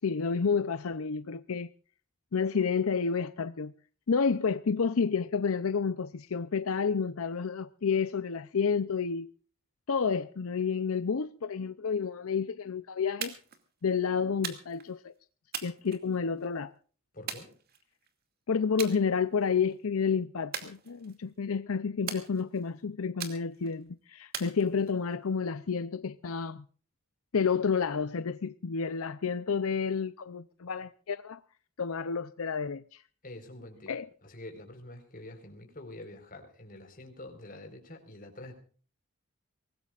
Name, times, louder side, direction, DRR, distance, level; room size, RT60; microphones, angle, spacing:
voice 1, 0.0-1.7 2.3-3.7 4.1-9.3 9.9-13.4 13.8-15.1 15.6-16.7 18.5-26.6 27.3-31.4 31.8-33.0 33.9-34.1, left 5 dB, 85° left, 0.6 m, -30 dB
sound 1, 13.2-13.6 14.4-14.9 15.5-16.5 17.3-18.1 18.8-19.0 19.4-19.7 20.5-21.3 22.1-22.7 23.2-23.7 24.3-25.1, right 7 dB, 45° right, 2.4 m, -40 dB
voice 2, 17.1-17.5 33.2-33.9 34.2-38.6, left 1 dB, 40° left, 4.5 m, -46 dB
23.5 x 19.0 x 2.5 m
head